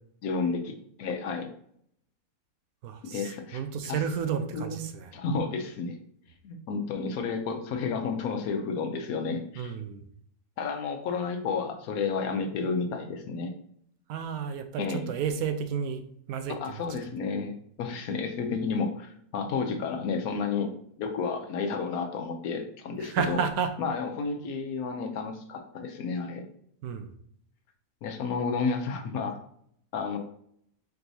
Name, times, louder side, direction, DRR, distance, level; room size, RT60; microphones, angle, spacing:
voice 1, 0.2-1.5 3.0-4.0 4.5-4.8 5.1-6.0 6.4-9.8 10.6-13.5 14.8-15.1 16.5-23.4 23.8-26.5 28.0-29.4 29.9-30.2, left 4 dB, 80° left, 5 dB, 1.2 m, -31 dB
voice 2, 2.8-5.1 9.6-10.0 14.1-16.0 16.3-16.8 23.0-23.7 26.8-27.1, right 7 dB, 80° right, 9 dB, 1.1 m, -31 dB
4.6 x 3.9 x 2.7 m, 0.66 s
omnidirectional pair, 1.5 m